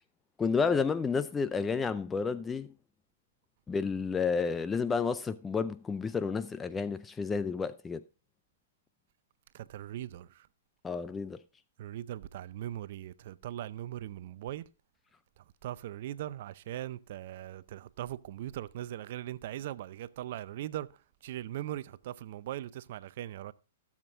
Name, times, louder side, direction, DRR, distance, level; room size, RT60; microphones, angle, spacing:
voice 1, 0.4-2.7 3.7-8.0 10.8-11.4, left 5 dB, 15° left, 0.4 m, -31 dB
voice 2, 9.5-10.5 11.8-14.7 15.4-23.5, right 12 dB, 55° right, 0.5 m, -40 dB
16.0 x 7.3 x 2.5 m
hypercardioid pair, 120°, 0 cm